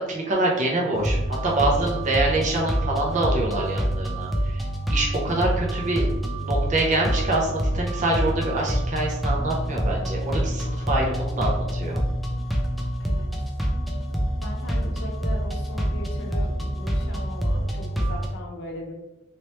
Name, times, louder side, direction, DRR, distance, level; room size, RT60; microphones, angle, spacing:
voice 1, 0.0-4.6 4.9-6.0 6.4-12.0, right 2 dB, 40° right, -2 dB, 0.6 m, -25 dB
sound 1, 0.9-18.3, equal, ahead, 0.4 m, -26 dB
voice 2, 13.0-13.3 14.4-18.9, left 1 dB, 65° left, 0 dB, 0.8 m, -38 dB
3.1 x 3.0 x 3.0 m, 1.0 s
head